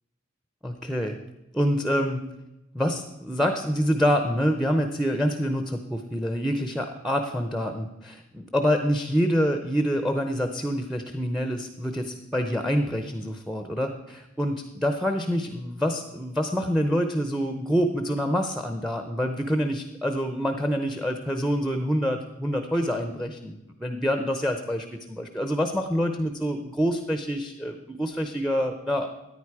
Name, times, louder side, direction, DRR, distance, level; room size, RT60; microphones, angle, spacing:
voice 1, 0.6-1.2 1.5-2.3 2.7-29.1, equal, ahead, 7 dB, 0.7 m, -26 dB
14.0 x 9.7 x 4.8 m, 0.95 s
head